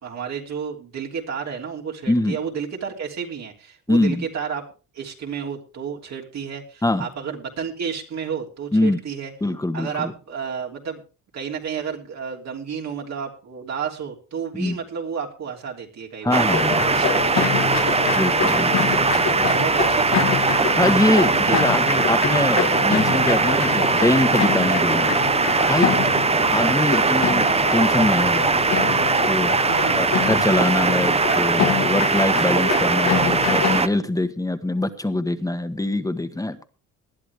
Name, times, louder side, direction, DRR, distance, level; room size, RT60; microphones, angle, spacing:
voice 1, 0.0-4.7 4.9-9.3 9.7-11.0 11.3-18.1 19.5-20.4 21.0-21.6 25.8-26.3 29.6-30.1, right 6 dB, 60° right, 0 dB, 3.2 m, -32 dB
voice 2, 3.9-4.2 6.8-7.1 8.7-9.0 9.4-10.1 14.5-14.8 16.2-16.8 18.1-19.2 20.8-25.1 25.7-25.9 26.5-27.4 27.7-28.5 29.2-29.5 30.0-36.6, left 2 dB, 10° left, 10 dB, 1.5 m, -23 dB
sound 1, 16.3-33.9, right 4 dB, 20° right, 0.8 m, -20 dB
sound 2, 16.5-33.8, left 8 dB, 60° left, 1.5 m, -26 dB
19.5 x 11.5 x 3.5 m, 0.35 s
cardioid pair, 90°, 30 cm